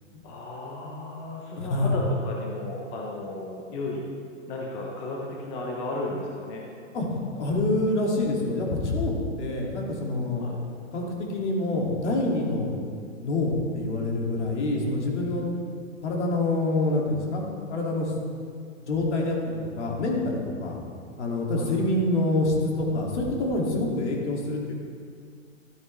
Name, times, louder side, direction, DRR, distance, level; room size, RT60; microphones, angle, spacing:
voice 1, 0.2-4.1 4.5-6.6 10.4-10.6 21.6-21.7, left 2 dB, 15° left, -2 dB, 0.6 m, -34 dB
voice 2, 1.6-2.0 6.9-10.4 10.9-12.8 13.2-15.5 16.0-17.4 17.7-18.1 18.8-20.8 21.2-24.7, left 2 dB, 60° left, -1 dB, 2.5 m, -26 dB
12.5 x 8.9 x 3.3 m, 2.2 s
hypercardioid pair, 150°, 40 cm